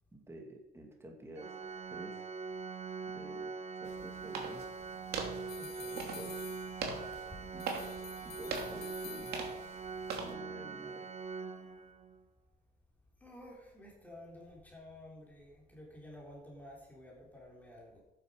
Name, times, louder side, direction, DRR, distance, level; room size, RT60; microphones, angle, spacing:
voice 1, 0.1-1.6 1.9-2.2 3.1-4.6 5.9-6.5 7.5-7.6 8.2-9.3 10.1-11.1, right 1 dB, 15° right, 1 dB, 2.4 m, -50 dB
Organ, 1.4-12.2, right 5 dB, 40° right, 1.2 m, -43 dB
sound 1, 3.8-10.3, right 4 dB, 70° right, 2.7 m, -43 dB
sound 2, 5.5-7.1 7.6-9.8, left 11 dB, 65° left, 1.0 m, -51 dB
voice 2, 5.5-6.1 7.1-7.4 10.0-10.1 13.2-18.0, left 1 dB, 10° left, -3 dB, 3.8 m, -52 dB
12.0 x 9.6 x 5.1 m, 0.95 s
cardioid pair, 110°, 17 cm